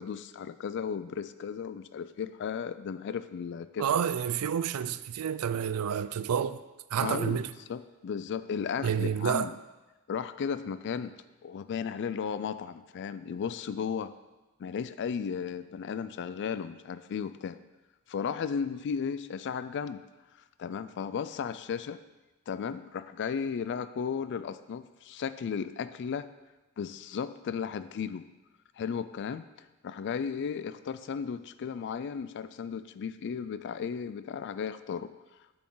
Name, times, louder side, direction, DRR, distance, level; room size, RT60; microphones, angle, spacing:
voice 1, 0.0-3.9 7.0-7.4 7.7-9.5 10.1-11.1 11.4-14.1 14.6-17.6 18.1-20.0 20.6-22.0 22.5-26.3 26.8-28.2 28.8-29.4 29.8-35.1, left 6 dB, 50° left, 0.3 m, -35 dB
voice 2, 3.8-6.6 6.9-7.5 8.8-9.5, right 8 dB, 75° right, 0.4 m, -29 dB
8.4 x 6.1 x 3.9 m
head